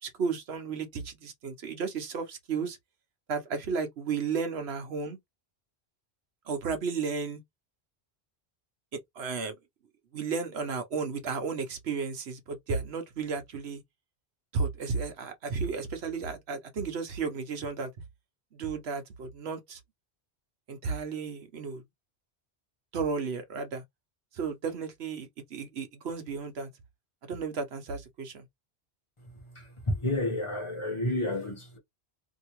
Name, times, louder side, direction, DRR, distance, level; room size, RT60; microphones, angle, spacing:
voice 1, 0.0-2.8 3.3-5.2 6.5-7.4 9.1-9.6 10.1-13.8 14.5-17.9 18.5-19.8 20.7-21.8 22.9-23.8 24.3-26.7 27.2-28.4, right 5 dB, 80° right, 1.1 m, -33 dB
voice 2, 29.5-31.8, left 1 dB, 30° left, 1.0 m, -30 dB
2.9 x 2.8 x 2.9 m
omnidirectional pair, 1.1 m